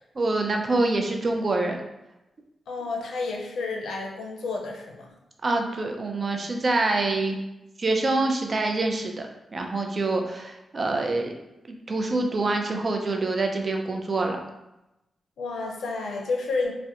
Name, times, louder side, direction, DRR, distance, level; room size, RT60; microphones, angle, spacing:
voice 1, 0.2-1.8 5.4-7.4 7.8-9.3 9.5-11.3 11.7-14.4, right 2 dB, 45° right, 3 dB, 0.4 m, -25 dB
voice 2, 2.7-5.1 15.4-16.7, left 3 dB, 85° left, 1 dB, 0.4 m, -30 dB
2.4 x 2.1 x 2.7 m, 0.93 s
cardioid pair, 70°, 0 cm